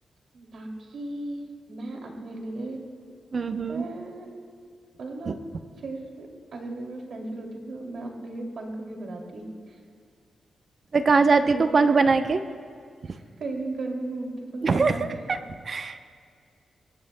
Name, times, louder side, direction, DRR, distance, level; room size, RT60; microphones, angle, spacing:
voice 1, 0.3-2.8 3.7-4.3 5.0-5.4 5.8-9.8 11.4-11.8 13.0-15.0, right 2 dB, 65° right, 1 dB, 2.6 m, -36 dB
voice 2, 3.3-3.9 5.3-5.4 10.9-12.4 13.0-13.2 14.6-15.4 15.6-16.0, right 4 dB, 45° right, 8 dB, 0.7 m, -22 dB
23.0 x 21.5 x 2.2 m, 2.2 s
wide cardioid pair, 125°, 0 cm